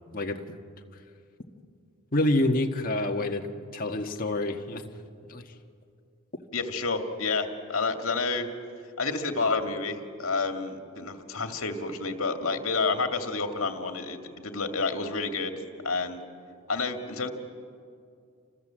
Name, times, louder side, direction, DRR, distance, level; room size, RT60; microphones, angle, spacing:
voice 1, 2.1-3.5 3.7-4.9 5.3-5.4, left 1 dB, 40° left, 3 dB, 1.6 m, -27 dB
voice 2, 6.5-8.5 9.0-15.5 15.8-16.2 16.7-17.3, left 4 dB, 70° left, 5 dB, 2.4 m, -29 dB
29.5 x 26.5 x 7.7 m, 2.4 s
head